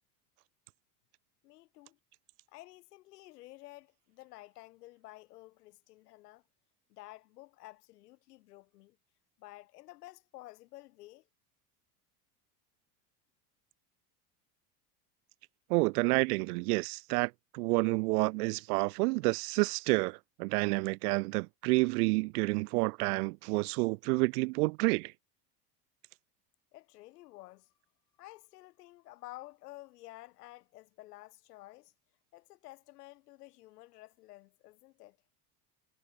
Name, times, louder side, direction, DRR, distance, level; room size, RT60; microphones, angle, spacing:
voice 1, 1.4-2.0 2.5-6.4 6.9-9.0 9.4-11.2 26.7-27.7 28.2-31.9 32.3-35.2, left 18 dB, 80° left, 7.3 m, -52 dB
voice 2, 15.7-25.1, right 26 dB, 75° right, 2.0 m, -29 dB
supercardioid pair, 95°, 46 cm